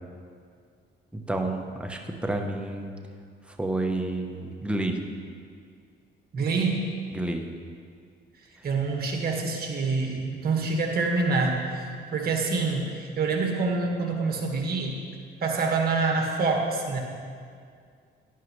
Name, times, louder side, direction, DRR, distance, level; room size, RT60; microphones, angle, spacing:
voice 1, 1.1-2.9 3.6-5.0 7.1-7.4, right 2 dB, 5° right, 3 dB, 0.9 m, -30 dB
voice 2, 6.3-6.9 8.6-15.0 15.4-17.0, right 3 dB, 50° right, 1 dB, 1.7 m, -26 dB
11.5 x 10.0 x 3.2 m, 2.2 s
cardioid pair, 90°, 20 cm